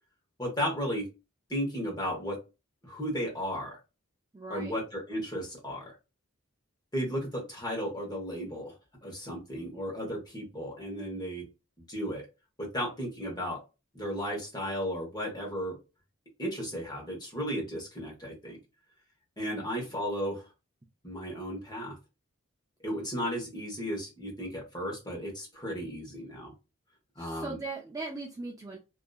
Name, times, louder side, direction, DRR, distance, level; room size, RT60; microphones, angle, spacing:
voice 1, 0.4-1.1 1.5-2.4 2.8-3.8 4.5-5.9 6.9-8.7 9.0-11.5 11.9-12.3 12.6-13.6 13.9-15.8 16.4-18.6 19.4-20.4 21.0-22.0 22.8-26.5 27.2-27.6, equal, 20° left, -2 dB, 1.0 m, -34 dB
voice 2, 4.3-4.8 19.5-20.0 27.2-28.8, right 3 dB, 15° right, 0 dB, 0.3 m, -40 dB
2.7 x 2.4 x 2.3 m, 0.28 s
head